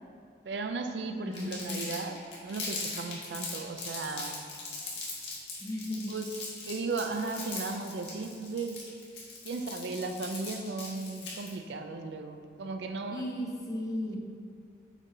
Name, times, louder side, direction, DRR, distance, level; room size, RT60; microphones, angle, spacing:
voice 1, 0.5-4.4 6.1-6.3 6.7-8.8 9.4-13.3, right 3 dB, 80° right, 6 dB, 0.4 m, -36 dB
voice 2, 1.2-1.8 5.6-6.1 13.1-14.2, left 1 dB, 20° left, -4 dB, 1.0 m, -35 dB
Crumpling crinkling, 1.3-11.5, left 4 dB, 80° left, 1.6 m, -40 dB
7.1 x 3.8 x 4.1 m, 2.3 s
head